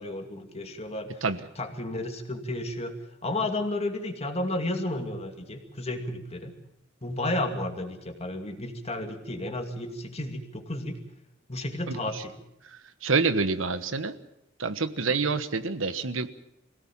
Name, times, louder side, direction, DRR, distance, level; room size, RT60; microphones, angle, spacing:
voice 1, 0.0-1.2 1.6-3.0 3.2-6.5 7.0-11.0 11.5-12.3 15.1-15.2, left 1 dB, 35° left, 5 dB, 2.4 m, -32 dB
voice 2, 11.9-12.2 13.0-14.2 14.6-16.4, right 4 dB, 85° right, 11 dB, 1.3 m, -27 dB
24.0 x 17.0 x 7.3 m, 0.84 s
head